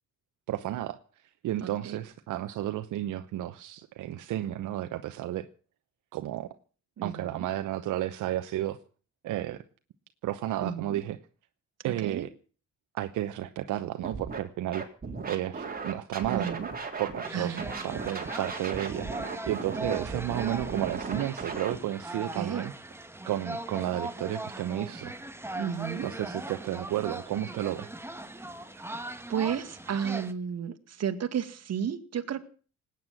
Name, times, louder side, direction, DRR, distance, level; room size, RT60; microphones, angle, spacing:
voice 1, 0.5-1.0 1.4-5.5 6.1-6.6 7.0-8.8 9.2-9.6 10.2-11.2 11.8-12.3 12.9-14.8 15.3-16.6 17.0-19.1 19.5-22.7 23.3-25.1 26.0-27.9, right 13 dB, 80° right, 0.9 m, -32 dB
voice 2, 1.6-2.0 7.0-7.5 10.6-11.0 11.8-12.2 16.3-16.7 17.3-17.7 22.3-22.7 25.5-26.1 29.3-32.4, right 8 dB, 55° right, 2.0 m, -33 dB
Scratching (performance technique), 14.0-14.4 14.7-17.3 17.6-21.8, right 4 dB, 30° right, 3.8 m, -36 dB
sound 1, 17.2-30.3, right 1 dB, 10° right, 1.5 m, -39 dB
19.0 x 9.4 x 7.6 m
cardioid pair, 90°, 30 cm